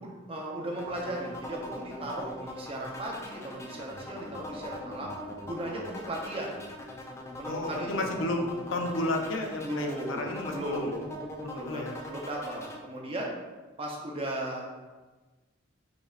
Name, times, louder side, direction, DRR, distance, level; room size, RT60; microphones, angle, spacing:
voice 1, 0.0-5.1 5.5-6.5 7.4-8.1 9.6-10.3 10.5-11.1 11.5-11.8 12.1-13.3 13.8-14.7, right 1 dB, 25° right, -1 dB, 0.6 m, -36 dB
sound 1, 0.8-12.8, left 1 dB, 15° left, 0.3 m, -41 dB
voice 2, 7.5-11.0 11.4-12.0, left 1 dB, 75° left, 3 dB, 0.5 m, -32 dB
5.0 x 3.2 x 2.4 m, 1.2 s
head